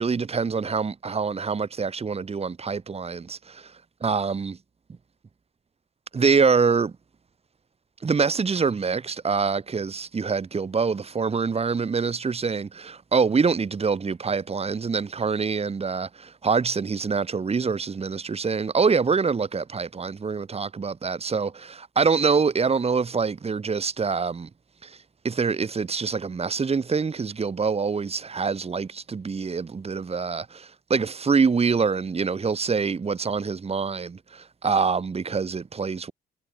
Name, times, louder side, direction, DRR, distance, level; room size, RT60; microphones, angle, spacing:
voice 1, 0.0-3.7 4.0-4.6 6.1-6.9 8.0-24.5 24.8-25.0 25.2-36.1, right 5 dB, 30° right, 1.7 m, -25 dB
cardioid pair, 90°, 20 cm